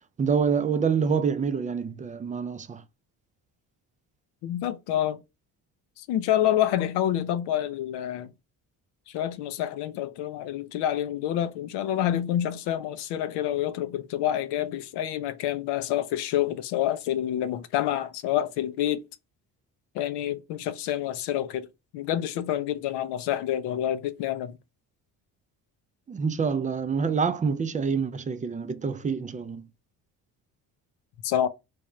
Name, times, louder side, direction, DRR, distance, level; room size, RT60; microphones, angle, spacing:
voice 1, 0.2-2.8 26.1-29.6, right 6 dB, 20° right, 0.3 m, -26 dB
voice 2, 4.4-5.2 6.0-8.3 9.1-19.0 19.9-21.7 21.9-24.6 31.2-31.5, left 11 dB, 80° left, 0.6 m, -28 dB
3.4 x 2.6 x 3.1 m
supercardioid pair, 70°, 41 cm